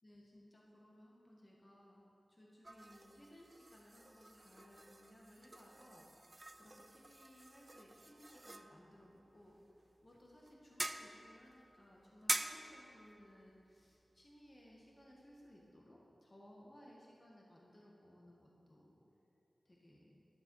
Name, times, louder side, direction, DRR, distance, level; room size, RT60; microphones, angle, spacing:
voice 1, 0.0-2.0 2.3-9.8 10.0-19.0 19.6-20.1, equal, 35° left, -3 dB, 1.5 m, -61 dB
sound 1, 2.6-15.7, right 2 dB, 35° right, 0.4 m, -47 dB
12.0 x 6.6 x 4.7 m, 3.0 s
cardioid pair, 40°, 0 cm